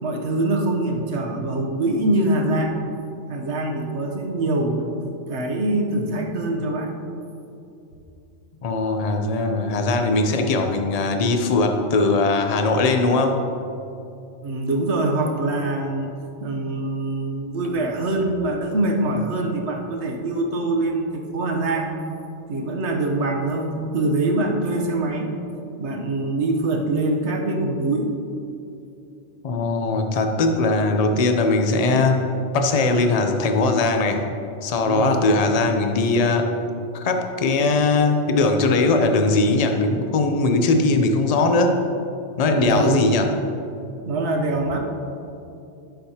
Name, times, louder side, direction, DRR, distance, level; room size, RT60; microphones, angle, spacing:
voice 1, 0.0-2.8 3.3-5.0 5.3-6.9 14.4-16.1 16.4-21.9 22.5-25.3 25.8-28.1 34.8-35.3 42.5-43.3 44.1-44.8, right 2 dB, 65° right, 2 dB, 1.2 m, -24 dB
voice 2, 8.6-13.4 29.4-32.3 32.5-34.2 34.6-36.5 36.9-41.7 42.4-43.3, left 3 dB, 45° left, 5 dB, 0.6 m, -20 dB
11.5 x 6.3 x 2.8 m, 2.7 s
omnidirectional pair, 1.3 m